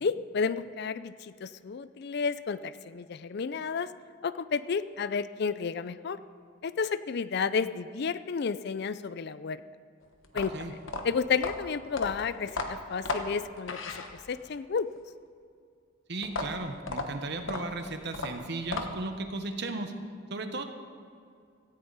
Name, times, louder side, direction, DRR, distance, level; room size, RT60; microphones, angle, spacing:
voice 1, 0.0-3.9 4.2-6.2 6.6-9.6 10.3-10.8 11.0-14.9, left 5 dB, 55° left, 15 dB, 0.4 m, -31 dB
sound 1, 10.2-14.6 16.2-19.2, left 3 dB, 75° left, 1.2 m, -35 dB
voice 2, 16.1-19.9 20.3-20.6, right 2 dB, 55° right, 6 dB, 1.2 m, -35 dB
17.0 x 14.5 x 4.1 m, 2.3 s
head